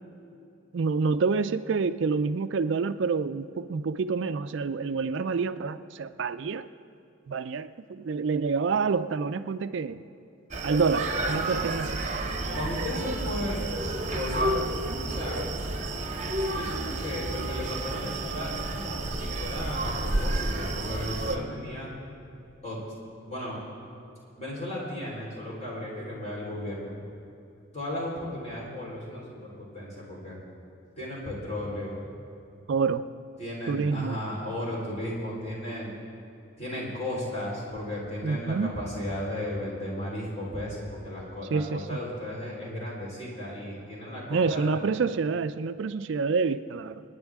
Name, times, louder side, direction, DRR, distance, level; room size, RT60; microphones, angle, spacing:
voice 1, 0.7-6.7 7.3-10.0 10.6-12.0 32.7-33.1 33.7-34.2 38.2-38.8 41.5-41.8 44.3-47.0, right 5 dB, 60° right, 12 dB, 0.4 m, -27 dB
Screaming, 10.5-21.4, right 2 dB, 35° right, 1.0 m, -30 dB
voice 2, 12.5-13.6 14.1-14.6 15.1-15.4 16.5-21.9 22.6-22.8 23.3-23.6 24.4-27.0 27.7-30.4 31.0-32.0 33.4-36.0 36.6-44.8, left 1 dB, 30° left, -5 dB, 3.9 m, -35 dB
26.5 x 9.8 x 3.6 m, 2.8 s
head